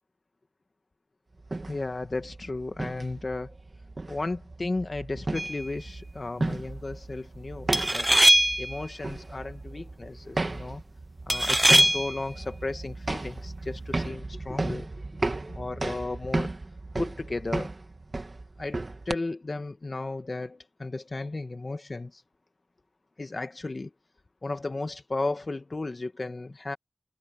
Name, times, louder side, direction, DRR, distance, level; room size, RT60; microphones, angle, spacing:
sound 1, 1.4-19.1, right 2 dB, 60° right, 2.3 m, -35 dB
voice 1, 1.7-3.5 4.1-8.1 8.6-10.8 11.3-14.9 15.5-16.5 17.0-17.7 18.6-22.2 23.2-23.9 24.4-26.8, left 2 dB, 60° left, 1.4 m, -34 dB
sound 2, 5.3-5.7 7.7-8.8 11.3-12.2, right 1 dB, 15° right, 0.4 m, -21 dB
wide cardioid pair, 50°, 0 cm